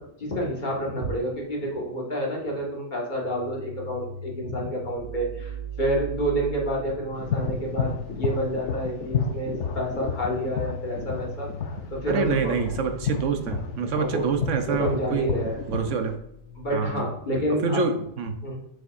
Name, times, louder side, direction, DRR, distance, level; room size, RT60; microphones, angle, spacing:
voice 1, 0.0-11.5 11.9-12.5 14.0-14.3 14.7-15.6 16.6-17.9 18.4-18.6, equal, 30° left, -2 dB, 1.8 m, -29 dB
sound 1, 3.2-16.9, right 2 dB, 35° right, 2.0 m, -41 dB
sound 2, 7.2-16.2, left 6 dB, 55° left, 0.8 m, -31 dB
voice 2, 12.1-15.3 15.7-16.2 16.7-17.1 17.6-18.4, right 5 dB, 55° right, 7 dB, 0.9 m, -26 dB
7.2 x 7.0 x 2.6 m, 0.75 s
omnidirectional pair, 1.8 m